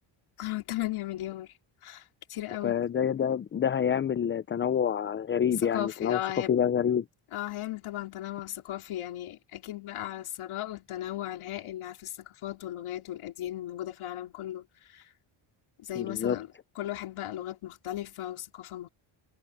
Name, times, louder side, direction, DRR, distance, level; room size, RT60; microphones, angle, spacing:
voice 1, 0.4-1.5 1.8-2.0 2.3-2.8 5.7-6.5 7.3-15.1 15.8-16.5 16.8-18.9, left 13 dB, 75° left, 2.9 m, -36 dB
voice 2, 2.6-7.0 16.0-16.4, left 8 dB, 25° left, 0.4 m, -27 dB
cardioid pair, 150°, 50 cm